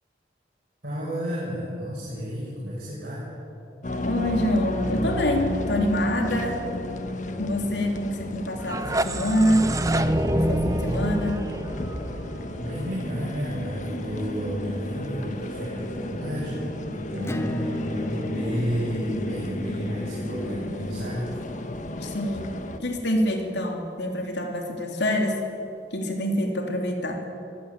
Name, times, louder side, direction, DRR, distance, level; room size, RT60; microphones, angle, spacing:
voice 1, 0.8-3.2 12.2-21.3, equal, 60° right, -8 dB, 7.9 m, -31 dB
sound 1, 3.8-22.8, left 1 dB, 45° left, 1.5 m, -33 dB
voice 2, 4.0-6.6 7.4-9.7 10.2-11.5 22.0-25.4 25.9-27.2, equal, 75° left, 2 dB, 3.3 m, -26 dB
sound 2, 8.5-13.4, right 1 dB, 20° right, 0.8 m, -27 dB
Acoustic guitar / Strum, 17.2-22.5, equal, 15° left, 1.1 m, -37 dB
23.5 x 17.0 x 8.9 m, 2.7 s
head